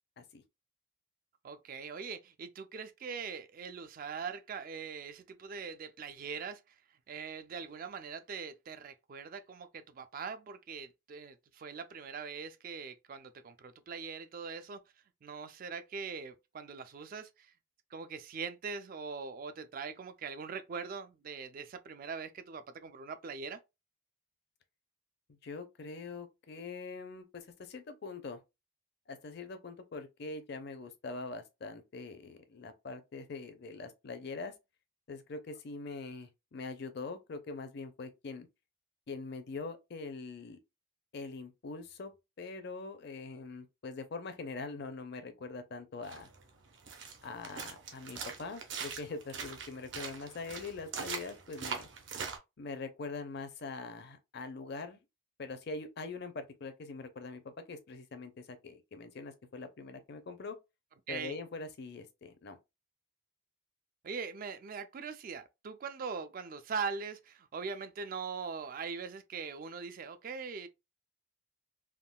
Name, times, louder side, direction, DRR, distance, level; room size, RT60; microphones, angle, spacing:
voice 1, 1.4-6.6 7.1-14.8 15.2-17.5 17.9-23.6 61.1-61.4 64.0-70.7, right 5 dB, 45° right, 0.3 m, -41 dB
voice 2, 25.3-28.4 29.1-34.5 35.1-38.5 39.1-40.6 41.1-42.1 42.4-46.3 47.2-51.9 52.6-55.0 55.4-60.6 61.1-62.6, left 3 dB, 55° left, 0.5 m, -43 dB
sound 1, 46.0-52.4, right 6 dB, 65° right, 0.7 m, -42 dB
3.5 x 2.2 x 2.2 m
head